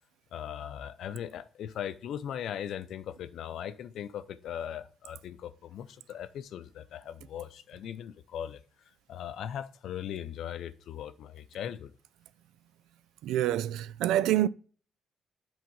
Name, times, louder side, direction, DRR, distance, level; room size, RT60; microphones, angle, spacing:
voice 1, 0.3-11.9, left 9 dB, 75° left, 0.6 m, -39 dB
voice 2, 13.2-14.5, right 13 dB, 90° right, 0.3 m, -26 dB
7.6 x 3.6 x 5.3 m
cardioid pair, 90°, 0 cm